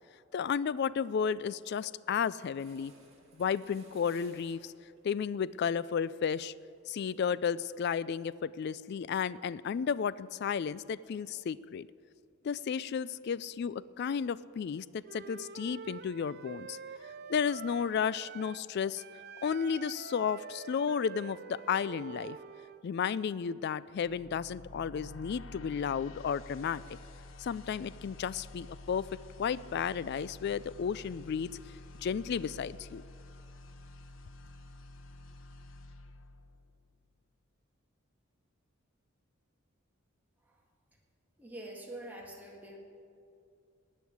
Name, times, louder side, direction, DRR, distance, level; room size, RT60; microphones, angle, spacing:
voice 1, 0.3-2.9 3.4-4.7 5.0-6.5 6.9-11.9 12.4-16.8 17.3-19.0 19.4-22.4 22.8-27.0 27.4-29.1 29.4-31.5 32.0-33.0, left 7 dB, 55° left, 18 dB, 0.3 m, -33 dB
sound 1, 2.5-7.9, right 2 dB, 30° right, 2.5 m, -62 dB
Wind instrument woodwind instrument, 15.0-18.7 18.9-22.8, right 6 dB, 55° right, 0.5 m, -47 dB
sound 2, 24.0-37.0, left 2 dB, 75° left, 0.7 m, -50 dB
voice 2, 41.4-42.8, right 1 dB, 10° right, -1 dB, 2.0 m, -45 dB
19.5 x 6.5 x 9.4 m, 2.5 s
head